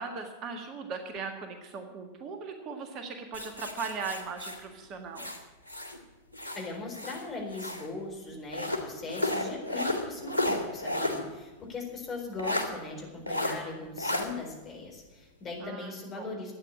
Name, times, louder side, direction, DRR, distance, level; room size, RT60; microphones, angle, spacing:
voice 1, 0.0-5.3 15.6-16.3, right 5 dB, 35° right, 5 dB, 1.6 m, -39 dB
sound 1, 3.3-6.0 6.3-7.9 8.5-11.2 11.6-11.7 12.4-12.7 13.3-13.6 14.0-14.2, left 1 dB, 85° right, 2.0 m, -32 dB
voice 2, 6.5-16.5, left 3 dB, 25° left, 0 dB, 4.4 m, -39 dB
12.5 x 9.2 x 8.7 m, 1.2 s
figure-of-eight pair, 90°, 0 cm